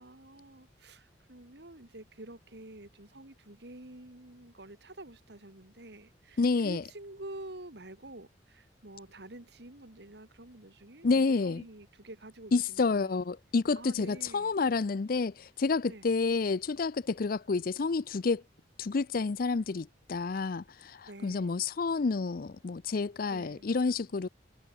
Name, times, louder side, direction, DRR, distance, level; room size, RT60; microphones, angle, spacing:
voice 1, 0.0-13.2 13.8-14.5 15.8-16.1 21.1-21.5 23.3-23.6, right 1 dB, 65° right, 2.5 m, -48 dB
voice 2, 6.4-6.8 11.0-11.6 12.5-18.4 18.8-24.3, left 4 dB, 50° left, 0.5 m, -29 dB
head